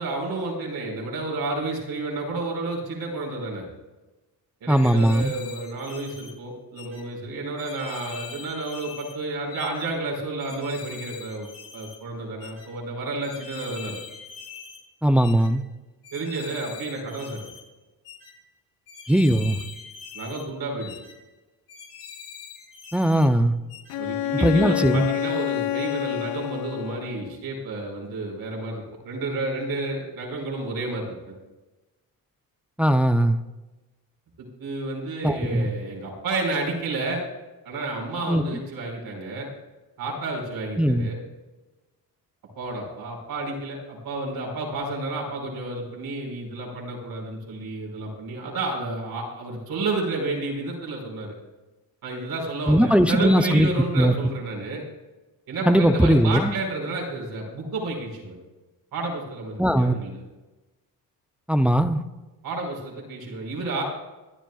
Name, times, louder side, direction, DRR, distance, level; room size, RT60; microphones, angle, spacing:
voice 1, 0.0-3.7 4.6-14.0 16.1-17.4 20.1-20.9 24.0-31.4 34.4-37.2 37.7-39.5 40.0-41.2 42.6-51.3 52.0-54.8 55.5-58.4 58.9-60.2 62.4-63.8, right 2 dB, 75° right, -1 dB, 5.4 m, -31 dB
sound 1, 4.7-6.3 6.7-7.0 7.6-9.2 9.5-9.9 10.4-12.0 12.4-12.7 13.2-14.8 15.1-15.5 16.0-17.6 18.0-18.3 18.9-20.5 20.8-21.1 21.7-23.3 23.7-24.0, left 6 dB, 60° left, 3.1 m, -43 dB
voice 2, 4.7-5.3 15.0-15.6 19.1-19.6 22.9-23.5 24.4-25.1 32.8-33.4 35.2-35.7 38.3-38.4 40.8-41.1 52.7-53.7 54.0-54.1 55.7-56.5 59.6-59.9 61.5-62.0, equal, 5° right, 8 dB, 0.5 m, -19 dB
Bowed string instrument, 23.9-27.4, left 13 dB, 85° left, 0.7 m, -28 dB
25.5 x 12.0 x 2.4 m, 1.1 s
cardioid pair, 155°, 36 cm